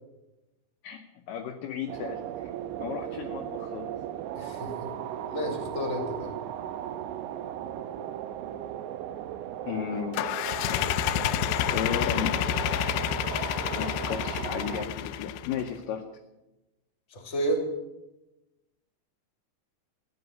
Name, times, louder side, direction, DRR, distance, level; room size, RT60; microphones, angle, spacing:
voice 1, 0.8-2.5 2.8-3.9 9.6-10.3 11.7-12.4 13.7-16.0, left 8 dB, 75° left, 4 dB, 2.1 m, -34 dB
sound 1, 1.9-14.9, right 11 dB, 85° right, 3.0 m, -37 dB
voice 2, 4.3-4.9 5.3-6.3 17.1-17.6, right 1 dB, 20° left, 3 dB, 2.7 m, -31 dB
sound 2, 10.1-15.7, left 11 dB, 90° left, 2.0 m, -29 dB
15.0 x 11.0 x 8.1 m, 0.99 s
omnidirectional pair, 5.0 m